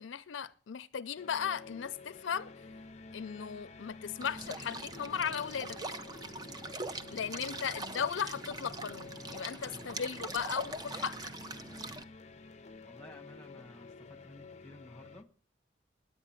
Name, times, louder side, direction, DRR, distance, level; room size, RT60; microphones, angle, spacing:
voice 1, 0.0-2.5 3.1-5.8 7.1-11.2, left 7 dB, 80° left, 0.5 m, -36 dB
sound 1, 1.2-15.2, left 4 dB, 35° left, 0.5 m, -51 dB
sound 2, 4.2-12.0, right 2 dB, 20° right, 0.6 m, -42 dB
voice 2, 6.3-6.8 7.2-7.7 9.5-9.9 12.8-15.3, left 1 dB, 5° left, 1.7 m, -54 dB
10.0 x 8.9 x 8.9 m
head